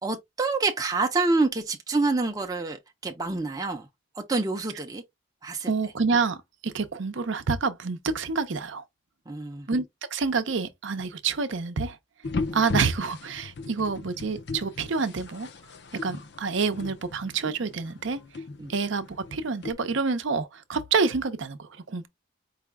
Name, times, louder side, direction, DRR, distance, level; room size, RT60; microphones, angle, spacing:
voice 1, 0.0-3.9 4.2-5.0 5.4-5.7 9.3-9.7 12.5-12.6 18.6-18.7, right 3 dB, 20° right, 0.5 m, -27 dB
voice 2, 5.7-8.8 9.7-9.9 10.1-12.0 12.5-15.5 16.0-18.2 18.7-22.1, right 4 dB, 65° right, 0.6 m, -28 dB
sound 1, 12.2-19.7, left 3 dB, 55° left, 0.5 m, -37 dB
4.8 x 2.2 x 3.4 m
head